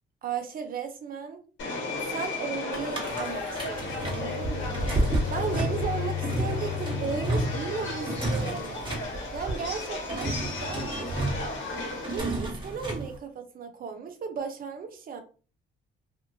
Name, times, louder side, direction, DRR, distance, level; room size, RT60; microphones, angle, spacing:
voice 1, 0.2-1.4 2.1-4.8 5.3-9.0 9.3-11.2 12.0-15.2, right 6 dB, 45° right, 0.6 m, -35 dB
Subway metro underground, 1.6-12.2, left 2 dB, 70° left, 1.1 m, -35 dB
sound 1, 2.7-13.2, right 1 dB, 25° right, 1.1 m, -32 dB
sound 2, 3.5-8.3, left 10 dB, 10° left, 0.6 m, -35 dB
2.6 x 2.5 x 2.6 m
cardioid pair, 90°, 20 cm